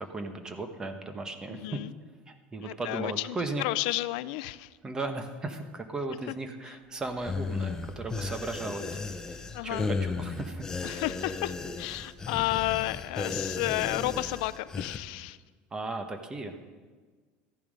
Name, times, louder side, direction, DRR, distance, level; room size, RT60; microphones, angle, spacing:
voice 1, 0.0-1.8 2.3-3.6 4.8-8.9 9.3-11.0 15.7-16.6, right 2 dB, 15° right, 7 dB, 1.1 m, -36 dB
voice 2, 1.5-1.9 2.6-4.8 6.3-6.4 6.6-6.7 9.5-9.9 10.8-15.4, left 17 dB, 80° left, 15 dB, 0.4 m, -32 dB
sound 1, 7.2-15.0, left 4 dB, 15° left, 0.7 m, -35 dB
14.0 x 11.0 x 5.2 m, 1.5 s
cardioid pair, 155°, 4 cm